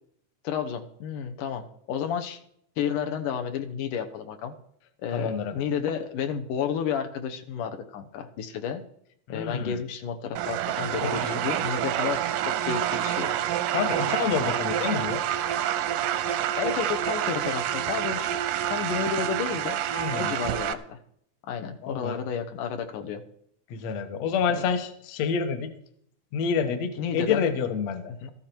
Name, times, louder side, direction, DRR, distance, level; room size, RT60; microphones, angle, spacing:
voice 1, 0.4-2.4 2.8-4.5 5.0-8.8 9.3-13.3 13.9-14.0 14.8-14.9 16.6-18.3 18.7-19.8 20.0-21.0 21.4-23.2 27.0-27.4 28.1-28.3, left 7 dB, 80° left, 6 dB, 2.6 m, -31 dB
voice 2, 5.1-5.5 9.3-9.8 11.0-11.4 13.7-15.2 19.9-20.3 21.8-22.2 23.7-25.7 26.3-28.1, left 6 dB, 65° left, 8 dB, 2.1 m, -28 dB
sound 1, 10.4-20.7, right 11 dB, 90° right, 2.4 m, -28 dB
14.0 x 13.0 x 4.5 m, 0.68 s
omnidirectional pair, 3.6 m